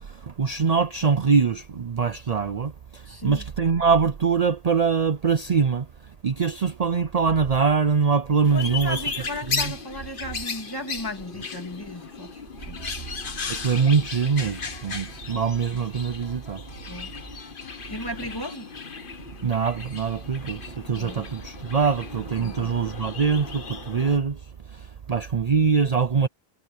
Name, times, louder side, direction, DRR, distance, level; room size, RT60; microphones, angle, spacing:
voice 1, 0.3-5.9 6.2-9.0 9.5-9.7 13.5-16.6 19.4-24.4 25.1-26.3, right 5 dB, 45° right, 0.7 m, -23 dB
voice 2, 3.1-3.4 8.5-12.9 16.9-17.1 17.9-18.7 20.9-21.3 22.4-22.7, left 1 dB, 20° left, 2.6 m, -36 dB
sound 1, 4.9-23.0, right 1 dB, 80° right, 5.4 m, -56 dB
sound 2, 8.4-24.2, left 5 dB, 55° left, 1.4 m, -36 dB
sound 3, 12.6-18.6, left 2 dB, 90° left, 2.8 m, -50 dB
omnidirectional pair, 1.0 m